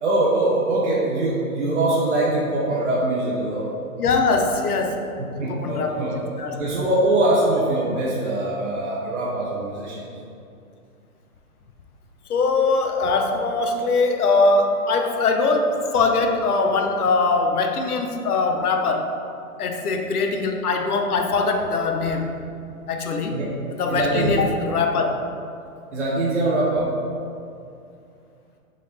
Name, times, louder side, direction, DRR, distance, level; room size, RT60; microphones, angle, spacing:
voice 1, 0.0-3.7 5.2-6.1 6.5-10.0 23.3-23.5 23.9-24.4 25.9-26.9, right 2 dB, 50° right, -6 dB, 0.7 m, -23 dB
voice 2, 3.7-5.0 5.5-6.6 12.3-19.1 19.6-22.4 22.9-23.4 23.8-25.1, left 3 dB, 75° left, 4 dB, 0.7 m, -22 dB
3.8 x 3.4 x 4.1 m, 2.5 s
hypercardioid pair, 180°, 45 cm